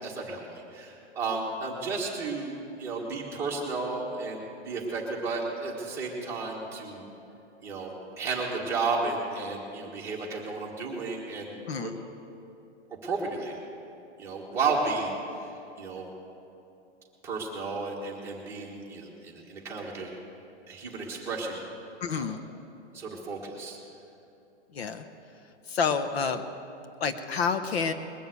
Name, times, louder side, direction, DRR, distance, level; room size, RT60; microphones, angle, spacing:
voice 1, 0.0-7.0 7.6-11.9 13.0-13.6 14.2-15.2 15.8-16.1 17.2-20.1 20.7-21.6 22.1-22.3 22.9-23.8, right 3 dB, 5° right, -5 dB, 1.5 m, -33 dB
voice 2, 22.0-22.4 24.7-25.1 25.7-26.4 27.0-27.9, left 5 dB, 60° left, 9 dB, 0.9 m, -28 dB
21.0 x 7.1 x 8.1 m, 2.8 s
hypercardioid pair, 175°, 35 cm